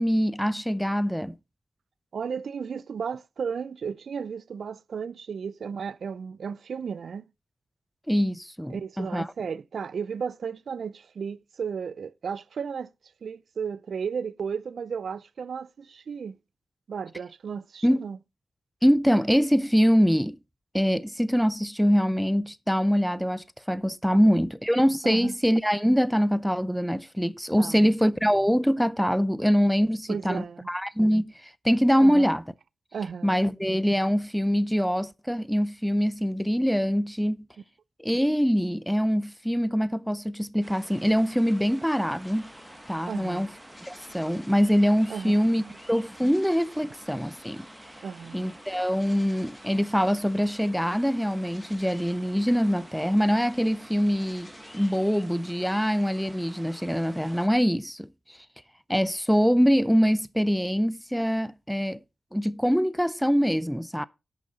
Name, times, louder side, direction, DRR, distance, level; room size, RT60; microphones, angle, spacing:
voice 1, 0.0-1.3 8.1-9.3 17.8-18.0 18.8-20.4 20.7-32.4 33.2-37.4 38.0-42.5 42.9-43.5 43.8-45.6 45.9-47.7 48.3-58.1 58.9-62.0 62.3-64.0, equal, ahead, 0.4 m, -24 dB
voice 2, 2.1-7.3 8.7-12.9 13.2-16.4 16.9-18.2 24.1-24.3 25.0-25.3 27.5-27.9 30.1-30.7 32.0-32.3 32.9-33.4 43.1-43.5 45.1-45.8 48.0-48.5, right 6 dB, 75° right, 0.4 m, -34 dB
sound 1, 40.6-57.5, right 2 dB, 20° right, 1.2 m, -50 dB
sound 2, 42.2-55.2, left 2 dB, 25° left, 1.6 m, -51 dB
10.5 x 6.6 x 3.9 m
wide cardioid pair, 90°, 0 cm